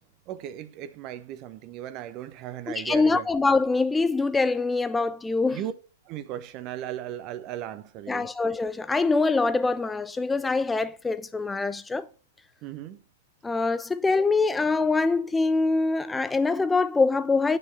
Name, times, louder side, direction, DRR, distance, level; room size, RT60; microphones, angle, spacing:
voice 1, 0.3-3.2 5.5-5.7 6.1-8.3 12.6-13.0, right 11 dB, 35° right, 0.9 m, -36 dB
voice 2, 2.7-5.6 8.1-12.1 13.4-17.6, left 3 dB, 10° left, 0.5 m, -24 dB
10.0 x 4.6 x 7.4 m
figure-of-eight pair, 105°, 0 cm